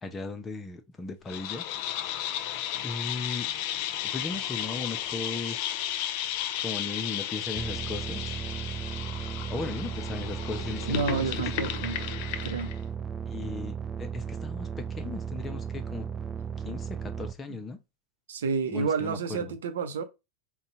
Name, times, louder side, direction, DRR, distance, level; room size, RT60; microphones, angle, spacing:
voice 1, 0.0-2.0 2.8-3.5 4.0-5.7 6.6-8.4 9.5-11.4 13.3-16.1 16.6-17.8 18.7-19.5, left 3 dB, 20° left, 0.8 m, -37 dB
sound 1, 1.3-12.8, left 12 dB, 55° left, 0.5 m, -34 dB
sound 2, 7.5-17.3, right 7 dB, 20° right, 0.5 m, -35 dB
voice 2, 10.9-12.0 12.4-12.7 18.3-20.0, right 5 dB, 70° right, 0.7 m, -29 dB
4.1 x 2.3 x 3.9 m
hypercardioid pair, 95°, 0 cm